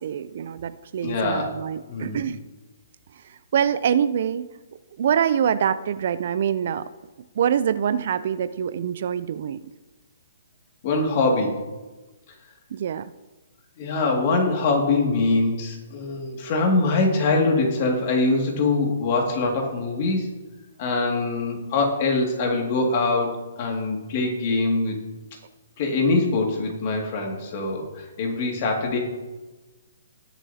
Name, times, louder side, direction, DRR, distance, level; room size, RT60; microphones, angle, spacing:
voice 1, 0.0-2.4 3.2-4.5 5.0-6.9 7.4-9.6 12.7-13.1, right 8 dB, 50° right, 15 dB, 0.4 m, -25 dB
voice 2, 1.0-1.5 1.9-2.2 10.8-11.6 13.8-20.3 20.8-23.3 23.6-24.9 25.8-29.0, left 3 dB, 35° left, 1 dB, 2.1 m, -23 dB
20.0 x 7.1 x 2.8 m, 1.2 s
hypercardioid pair, 160°, 0 cm